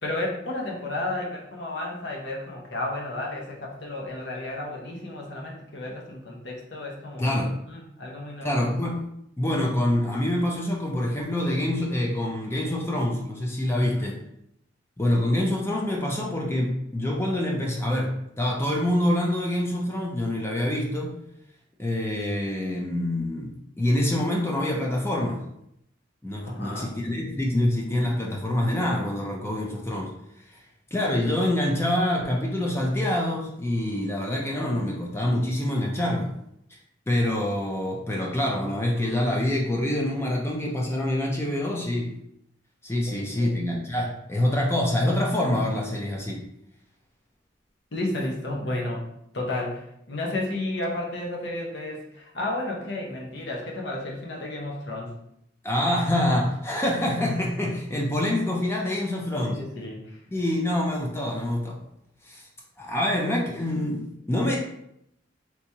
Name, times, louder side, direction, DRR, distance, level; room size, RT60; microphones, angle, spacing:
voice 1, 0.0-7.3 7.7-8.6 13.8-14.1 26.5-27.0 43.1-43.6 47.9-49.1 49.3-55.1 59.4-60.2, left 1 dB, 65° left, -1 dB, 0.8 m, -32 dB
voice 2, 7.2-7.5 8.4-9.1 9.4-14.2 15.0-21.2 21.8-23.5 23.8-25.4 26.2-30.1 30.9-36.3 37.1-42.1 42.8-46.4 55.6-59.6 60.3-61.8 62.2-62.5 62.8-64.6, left 1 dB, 15° left, -2 dB, 0.4 m, -26 dB
3.4 x 2.9 x 2.7 m, 0.77 s
head